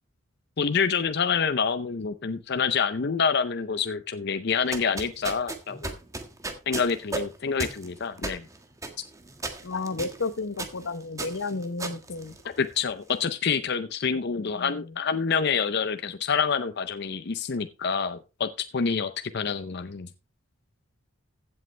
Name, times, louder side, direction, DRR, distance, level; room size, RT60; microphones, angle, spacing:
voice 1, 0.6-6.0 6.7-8.4 12.6-20.1, left 6 dB, 55° left, 10 dB, 0.6 m, -27 dB
sound 1, 4.5-12.9, right 2 dB, 15° right, 1.5 m, -36 dB
voice 2, 9.6-12.4 14.1-14.9, left 3 dB, 75° left, 13 dB, 0.9 m, -33 dB
15.5 x 7.7 x 3.3 m, 0.29 s
head